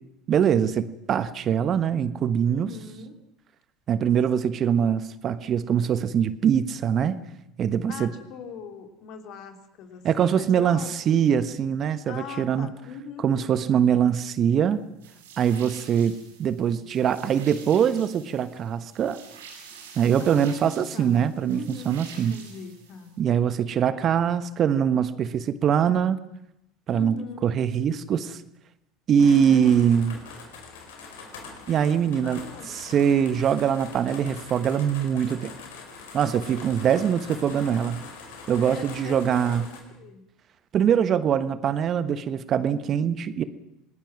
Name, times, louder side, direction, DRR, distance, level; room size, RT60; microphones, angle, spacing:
voice 1, 0.3-2.7 3.9-7.2 7.6-8.1 10.0-12.7 13.2-14.8 15.4-19.2 20.0-22.4 23.2-26.2 26.9-27.2 27.4-28.4 29.1-30.1 31.7-32.4 32.7-35.5 36.1-38.0 38.5-39.7 40.7-43.4, right 8 dB, 45° right, 13 dB, 1.3 m, -23 dB
voice 2, 2.5-3.2 7.9-11.2 12.1-13.4 20.2-23.1 26.9-27.6 29.2-29.7 30.6-30.8 32.2-32.8 38.6-39.7 39.9-40.2, left 6 dB, 55° left, 5 dB, 3.4 m, -40 dB
sound 1, 15.0-23.2, right 6 dB, 80° right, 7.1 m, -48 dB
sound 2, 29.1-39.8, left 5 dB, 75° left, 4.5 m, -43 dB
27.5 x 19.5 x 6.1 m, 0.82 s
hypercardioid pair, 75°, 0 cm